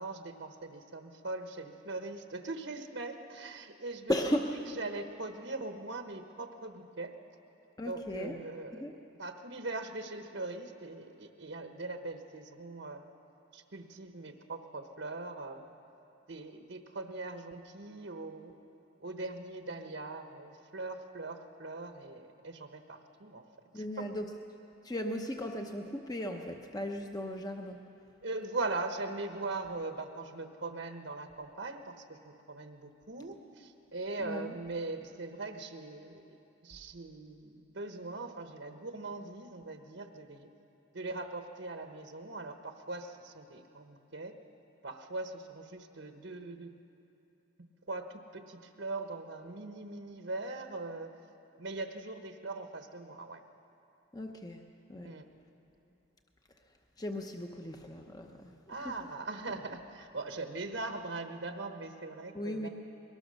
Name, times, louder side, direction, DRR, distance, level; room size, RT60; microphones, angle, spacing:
voice 1, 0.0-4.2 4.5-7.1 7.8-8.8 9.2-13.1 13.5-15.7 16.3-18.6 19.0-23.4 23.7-23.8 28.2-36.2 36.6-40.5 40.9-44.3 44.8-46.7 47.9-51.1 51.6-53.4 55.0-55.2 58.7-62.7, right 2 dB, 70° right, 5 dB, 1.1 m, -41 dB
voice 2, 4.1-4.5 7.8-8.4 8.7-8.9 23.7-24.3 24.8-27.8 34.2-34.5 54.1-54.6 54.9-55.1 57.0-59.0 62.3-62.7, left 1 dB, 20° left, 3 dB, 0.8 m, -36 dB
22.5 x 19.0 x 6.5 m, 2.8 s
head